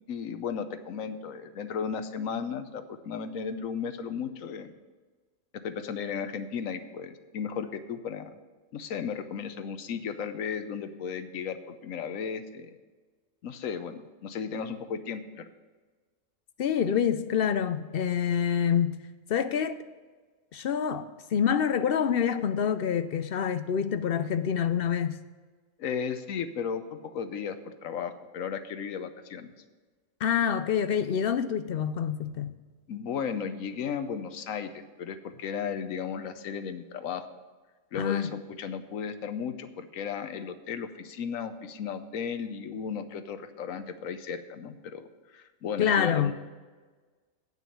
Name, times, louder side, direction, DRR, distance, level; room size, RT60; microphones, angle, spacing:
voice 1, 0.1-4.7 5.5-8.3 8.7-12.8 13.4-15.5 25.8-29.5 32.9-37.3 37.9-45.1 45.3-46.3, left 6 dB, 75° left, 1.1 m, -35 dB
voice 2, 16.6-18.9 19.3-19.8 20.5-25.2 30.2-32.6 37.9-38.3 45.8-46.3, left 8 dB, 60° left, 0.6 m, -26 dB
9.1 x 6.1 x 8.4 m
omnidirectional pair, 1.4 m